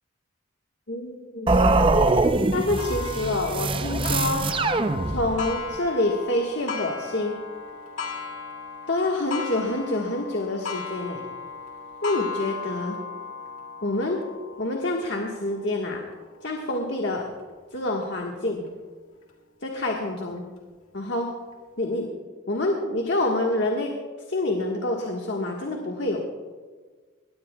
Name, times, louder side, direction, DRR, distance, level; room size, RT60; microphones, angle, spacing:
voice 1, 0.9-1.8 2.5-4.4 5.1-7.3 8.9-11.2 12.0-12.9 13.8-14.2 14.6-16.0 16.4-17.3 17.7-18.7 19.6-20.4 20.9-21.3 21.8-22.2 22.5-23.9 24.3-26.2, left 2 dB, 55° left, 0 dB, 1.5 m, -27 dB
sound 1, 1.5-5.6, right 2 dB, 25° right, 0.5 m, -23 dB
Clock, 2.8-18.1 18.7-18.8 19.3-19.4 20.4-20.5, left 5 dB, 80° left, 2.0 m, -37 dB
21.0 x 19.0 x 2.3 m, 1.4 s
head